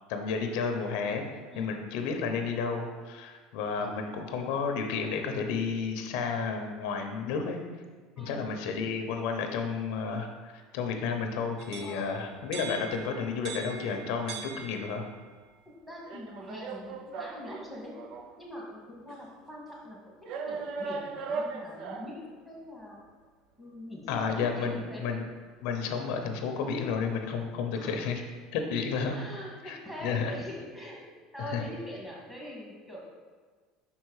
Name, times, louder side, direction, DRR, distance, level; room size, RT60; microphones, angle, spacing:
voice 1, 0.1-1.2 1.5-7.6 8.2-15.0 24.1-25.2 25.6-28.2 28.5-29.2 29.6-30.3 31.4-31.6, left 5 dB, 70° left, 4 dB, 0.7 m, -32 dB
voice 2, 1.5-1.8 3.8-4.1 8.2-8.5 11.8-12.2 15.7-18.0 18.4-20.2 20.5-23.0 23.6-25.1 27.8-28.1 29.1-31.0 31.3-33.0, left 1 dB, 10° right, -4 dB, 1.9 m, -43 dB
sound 1, 11.6-15.2 16.1-18.4 19.1-19.2 20.3-22.2, right 4 dB, 55° right, 0.5 m, -39 dB
5.7 x 4.6 x 4.7 m, 1.5 s
cardioid pair, 135°, 0 cm